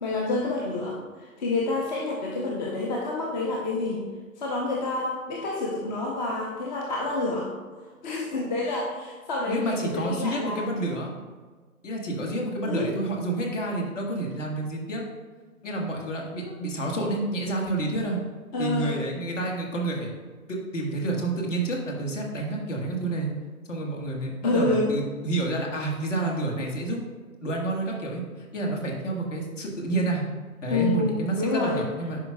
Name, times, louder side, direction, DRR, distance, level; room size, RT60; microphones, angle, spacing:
voice 1, 0.0-4.1 4.4-7.5 8.0-10.6 12.6-12.9 18.5-19.0 24.4-24.9 30.7-31.8, left 2 dB, 30° left, -1 dB, 0.8 m, -28 dB
voice 2, 9.5-11.1 11.8-15.0 15.6-18.2 18.6-20.1 20.5-23.3 23.7-27.0 27.4-30.2 30.6-32.2, right 2 dB, 60° left, 0 dB, 1.7 m, -29 dB
10.5 x 4.9 x 2.3 m, 1.4 s
figure-of-eight pair, 130°, 43 cm